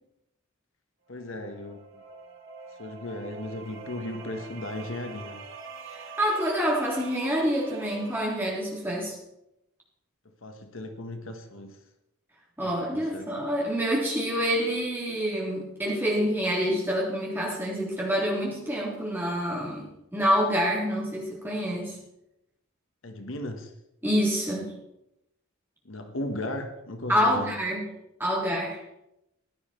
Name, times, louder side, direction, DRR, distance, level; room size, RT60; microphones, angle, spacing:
voice 1, 1.1-2.0 2.8-5.4 10.4-11.8 12.6-13.3 23.0-23.7 25.8-27.5, left 1 dB, 70° left, 6 dB, 1.4 m, -36 dB
sound 1, 1.1-8.9, right 4 dB, 60° right, 2.9 m, -45 dB
voice 2, 5.9-9.2 12.6-19.9 20.1-22.0 24.0-24.7 27.1-27.9 28.2-28.8, equal, 10° right, -4 dB, 3.6 m, -27 dB
15.5 x 11.5 x 4.5 m, 0.85 s
head